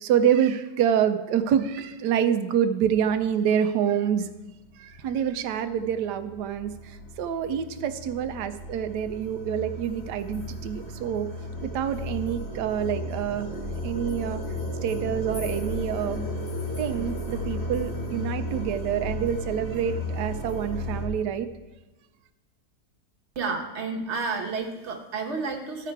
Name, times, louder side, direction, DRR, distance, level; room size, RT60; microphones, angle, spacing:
voice 1, 0.0-4.3 4.8-6.7 7.2-11.3 11.6-13.5 13.8-14.4 14.8-16.2 16.8-21.5, right 8 dB, 80° right, 9 dB, 1.2 m, -26 dB
sound 1, 4.1-4.2 4.7-21.0, equal, 40° left, 1.7 m, -34 dB
voice 2, 23.3-25.9, right 4 dB, 45° right, 2 dB, 1.3 m, -31 dB
13.5 x 4.9 x 4.6 m, 1.1 s
omnidirectional pair, 1.8 m